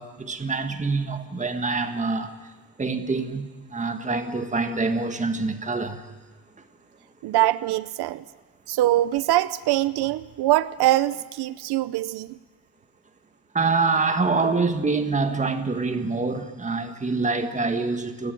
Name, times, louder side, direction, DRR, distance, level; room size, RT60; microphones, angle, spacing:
voice 1, 0.0-2.5 2.8-6.1 13.5-18.3, right 3 dB, 20° right, 1.7 m, -25 dB
voice 2, 7.2-8.2 8.7-12.4, right 15 dB, 90° right, 0.7 m, -23 dB
29.0 x 15.0 x 9.2 m
cardioid pair, 150°, 38 cm